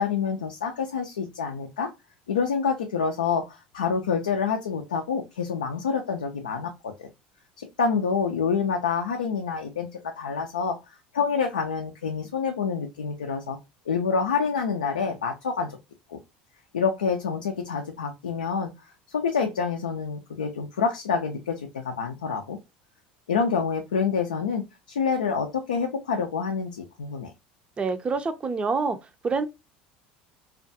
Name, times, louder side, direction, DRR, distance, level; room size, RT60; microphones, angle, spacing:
voice 1, 0.0-1.9 2.3-7.1 7.6-10.8 11.1-13.6 13.9-15.8 16.1-16.2 16.7-18.7 19.1-22.6 23.3-27.3, left 5 dB, 90° left, 0.4 m, -27 dB
voice 2, 27.8-29.0 29.2-29.5, right 4 dB, 25° right, 0.5 m, -26 dB
2.4 x 2.2 x 2.6 m
hypercardioid pair, 80°, 4 cm